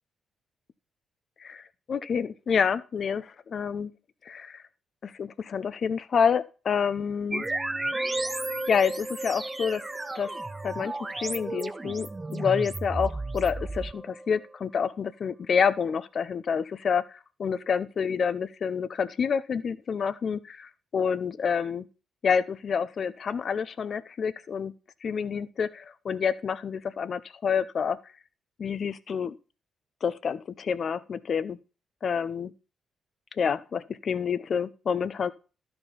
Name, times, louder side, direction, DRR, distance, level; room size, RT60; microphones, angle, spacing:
voice 1, 1.4-3.9 4.2-4.6 5.0-7.4 8.7-9.8 10.1-10.3 10.6-17.0 17.4-21.9 22.2-24.7 25.0-28.0 28.6-29.3 30.0-31.6 32.0-32.5 33.4-35.3, left 6 dB, 55° left, 15 dB, 0.7 m, -28 dB
sound 1, 7.3-14.5, right 2 dB, 25° right, 0.7 m, -33 dB
12.5 x 4.4 x 5.4 m, 0.34 s
hypercardioid pair, 45°, 0 cm